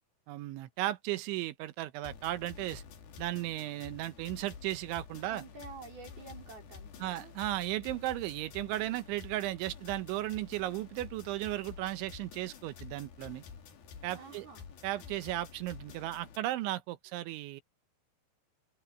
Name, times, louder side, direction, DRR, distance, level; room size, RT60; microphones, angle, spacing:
voice 1, 0.3-2.8 3.2-5.4 7.0-13.4 14.0-14.5 14.8-17.6, right 15 dB, 80° right, 3.3 m, -35 dB
sound 1, 2.0-16.4, left 6 dB, 55° left, 4.1 m, -50 dB
voice 2, 5.3-7.3 14.1-14.7, right 4 dB, 55° right, 6.3 m, -49 dB
open air
omnidirectional pair, 5.5 m